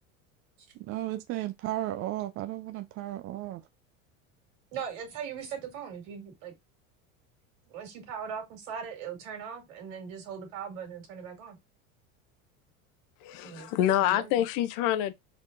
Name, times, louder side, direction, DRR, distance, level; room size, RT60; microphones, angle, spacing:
voice 1, 0.7-3.6, right 15 dB, 35° right, 0.4 m, -34 dB
voice 2, 4.7-6.5 7.7-11.6 13.4-14.4, right 7 dB, 70° right, 2.3 m, -40 dB
voice 3, 13.2-15.1, left 12 dB, 55° left, 0.6 m, -26 dB
4.4 x 3.7 x 2.6 m
hypercardioid pair, 90°, 41 cm